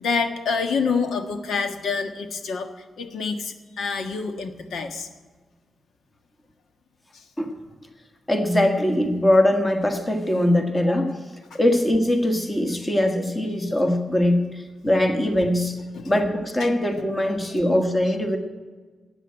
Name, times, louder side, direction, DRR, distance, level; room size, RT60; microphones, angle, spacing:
voice 1, 0.0-2.7 3.0-5.1 7.1-7.2 11.5-11.6 15.9-16.1 16.6-16.7 17.2-17.6, left 5 dB, 80° left, 6 dB, 1.4 m, -27 dB
voice 2, 8.3-11.2 11.5-15.8 16.0-18.4, left 1 dB, 15° left, 5 dB, 1.5 m, -21 dB
13.0 x 8.8 x 8.8 m, 1.4 s
wide cardioid pair, 155°, 0 cm